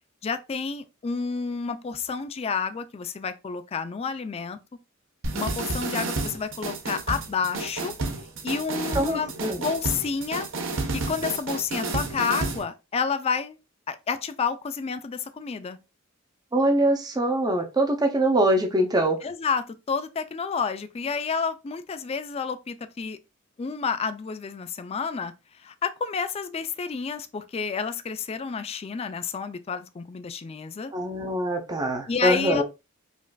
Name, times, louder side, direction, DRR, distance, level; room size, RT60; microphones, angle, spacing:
voice 1, 0.2-4.6 5.3-7.9 8.4-9.3 9.6-10.5 11.1-13.6 13.9-15.8 19.2-23.2 23.6-25.3 25.6-30.9 32.1-32.6, left 5 dB, 30° left, 0.3 m, -30 dB
sound 1, 5.2-12.6, right 2 dB, 65° right, 0.8 m, -31 dB
voice 2, 8.9-9.6 16.5-19.2 30.9-32.6, right 1 dB, 20° right, 0.6 m, -23 dB
5.1 x 2.4 x 2.3 m
head